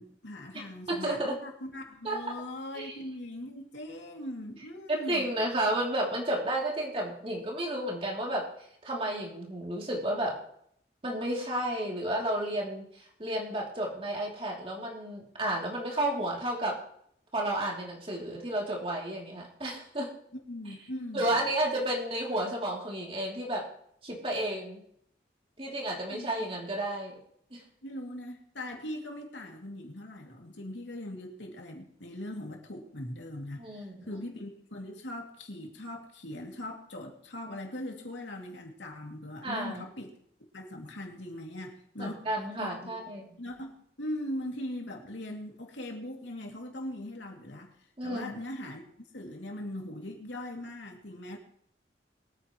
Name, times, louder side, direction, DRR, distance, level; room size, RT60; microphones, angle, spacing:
voice 1, 0.0-5.2 20.5-21.5 26.1-26.3 27.8-40.1 40.5-42.3 42.6-42.9 43.4-47.7 48.0-48.9 49.1-51.4, left 1 dB, 85° left, 1 dB, 2.6 m, -40 dB
voice 2, 0.9-1.4 2.0-2.2 2.7-3.0 4.9-8.5 8.8-10.3 11.0-16.7 17.3-20.1 21.1-23.6 24.0-24.8 25.6-27.2 27.5-27.6 33.6-34.2 39.4-39.9 42.0-43.3 48.0-48.3, right 1 dB, 30° right, -2 dB, 3.0 m, -32 dB
23.0 x 9.3 x 3.1 m, 0.68 s
head